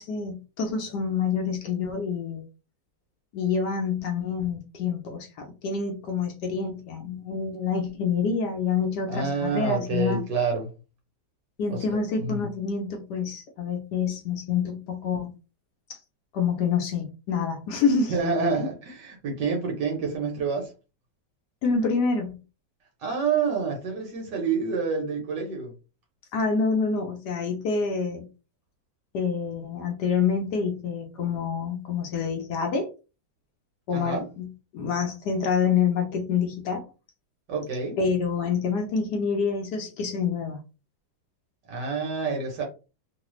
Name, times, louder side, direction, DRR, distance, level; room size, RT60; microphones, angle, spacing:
voice 1, 0.0-2.4 3.3-10.2 11.6-15.3 15.9-16.0 16.3-18.1 21.6-22.4 26.3-28.3 29.1-32.9 33.9-36.8 38.0-40.6, left 5 dB, 70° left, 1.1 m, -27 dB
voice 2, 9.1-10.7 11.7-12.5 18.1-20.7 23.0-25.7 33.9-34.2 37.5-38.0 41.7-42.6, right 4 dB, 65° right, 1.4 m, -28 dB
3.1 x 2.4 x 3.0 m
omnidirectional pair, 2.1 m